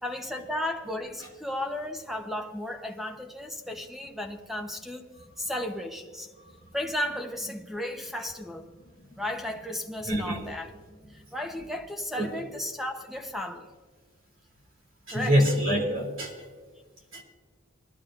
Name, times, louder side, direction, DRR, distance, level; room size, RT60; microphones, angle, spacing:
voice 1, 0.0-5.1 5.4-6.3 6.7-8.7 9.2-10.7 11.3-13.7 15.1-15.4 15.7-15.8, left 1 dB, ahead, 0.8 m, -34 dB
voice 2, 10.0-10.4 12.2-12.3 15.1-16.4 17.1-17.2, equal, 70° right, 2.9 m, -25 dB
20.5 x 12.5 x 2.5 m
head